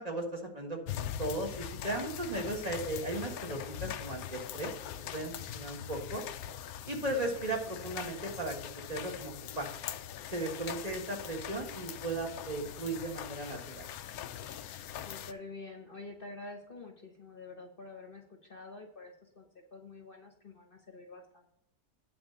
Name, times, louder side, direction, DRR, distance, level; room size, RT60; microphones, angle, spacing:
voice 1, 0.0-4.7 5.1-6.2 6.9-8.6 8.9-9.7 10.3-13.9, right 2 dB, 25° right, 1 dB, 1.6 m, -36 dB
sound 1, 0.9-15.3, left 10 dB, 70° left, 1.0 m, -42 dB
voice 2, 15.0-19.4 19.7-21.5, left 3 dB, 40° left, 3 dB, 1.1 m, -48 dB
9.4 x 4.2 x 6.5 m, 0.79 s
omnidirectional pair, 1.7 m